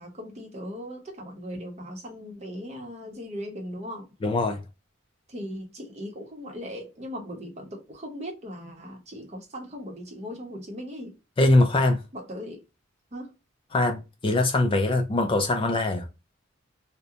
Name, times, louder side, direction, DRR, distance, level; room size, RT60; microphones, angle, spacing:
voice 1, 0.0-4.1 5.3-11.1 12.1-12.6 13.1-13.3, equal, 35° right, 0.8 m, -38 dB
voice 2, 4.2-4.6 11.4-12.0 13.7-16.1, left 2 dB, 25° left, 0.4 m, -22 dB
2.8 x 2.1 x 2.3 m
head